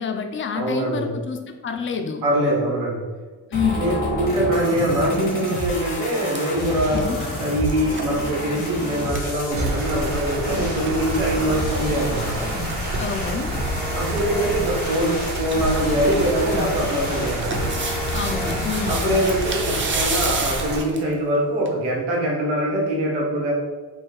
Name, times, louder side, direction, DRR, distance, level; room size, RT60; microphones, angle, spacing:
voice 1, 0.0-2.2 3.5-3.9 6.9-7.2 13.0-13.5 18.1-19.1, left 6 dB, 30° left, 5 dB, 0.4 m, -27 dB
voice 2, 0.5-1.1 2.2-3.1 3.8-12.5 13.9-17.8 18.9-23.5, right 1 dB, 90° right, -2 dB, 0.8 m, -23 dB
sound 1, 3.5-19.5, equal, 75° left, 1.4 m, -29 dB
sound 2, 5.2-5.5 5.9-10.1 10.4-10.5 10.7-11.0 12.2-13.1 13.7-14.2 14.5-14.6 14.9-15.6 15.9-21.1 21.7-21.8, right 3 dB, 30° right, 0.6 m, -31 dB
sound 3, 9.5-20.8, right 1 dB, 55° right, 1.1 m, -29 dB
3.2 x 2.2 x 3.5 m, 1.4 s
supercardioid pair, 60°, 41 cm